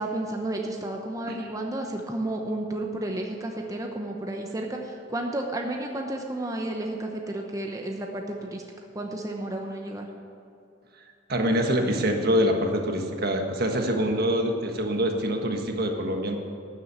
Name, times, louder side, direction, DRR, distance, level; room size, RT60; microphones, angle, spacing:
voice 1, 0.0-8.6 8.9-10.1, right 1 dB, 20° right, 1 dB, 0.9 m, -32 dB
voice 2, 11.3-16.4, equal, 55° right, 3 dB, 1.5 m, -25 dB
12.5 x 7.6 x 9.0 m, 2.6 s
head